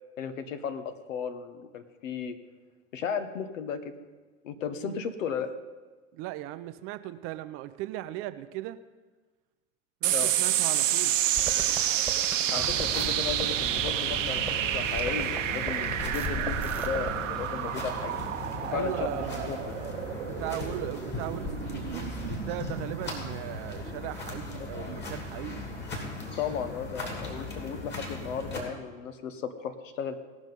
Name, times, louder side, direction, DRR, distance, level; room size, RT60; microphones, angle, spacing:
voice 1, 0.2-2.4 2.9-3.9 4.4-5.5 10.1-10.3 12.5-18.2 18.6-19.2 19.5-19.7 24.6-24.7 26.4-30.2, left 7 dB, 70° left, 10 dB, 1.2 m, -35 dB
voice 2, 6.1-8.8 10.0-11.2 18.7-19.6 20.2-25.7, right 15 dB, 35° right, 12 dB, 0.5 m, -38 dB
sound 1, 10.0-24.8, right 11 dB, 70° right, 1.0 m, -30 dB
sound 2, 11.3-17.1, right 1 dB, 5° right, 1.6 m, -39 dB
sound 3, 12.6-28.6, left 2 dB, 25° left, 2.9 m, -38 dB
18.5 x 6.1 x 5.4 m, 1.3 s
hypercardioid pair, 105°, 40 cm